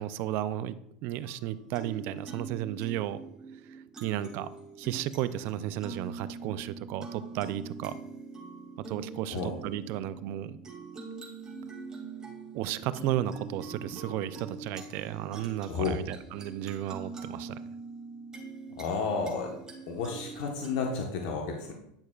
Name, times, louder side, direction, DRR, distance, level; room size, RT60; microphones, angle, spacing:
voice 1, 0.0-3.2 3.7-4.5 4.8-8.0 8.8-10.6 12.5-17.6, right 12 dB, 60° right, 14 dB, 0.5 m, -34 dB
sound 1, 1.2-20.9, right 4 dB, 15° right, 2.4 m, -44 dB
voice 2, 15.7-16.0 18.8-19.6 19.9-21.7, left 5 dB, 70° left, 1 dB, 1.2 m, -31 dB
10.5 x 6.3 x 2.4 m, 0.77 s
hypercardioid pair, 100°, 4 cm